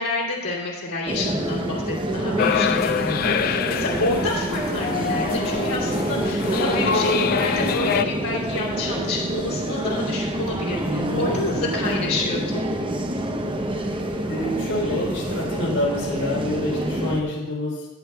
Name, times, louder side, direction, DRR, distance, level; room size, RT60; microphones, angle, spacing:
voice 1, 0.0-12.6, left 2 dB, 80° left, -7 dB, 2.6 m, -29 dB
sound 1, 1.1-17.2, right 1 dB, 20° right, 0.8 m, -27 dB
sound 2, 2.4-8.0, left 7 dB, 40° left, 0.3 m, -25 dB
voice 2, 3.0-3.3 10.9-11.6 14.3-17.9, left 1 dB, 60° left, -6 dB, 3.9 m, -27 dB
21.5 x 7.8 x 2.3 m, 0.99 s
head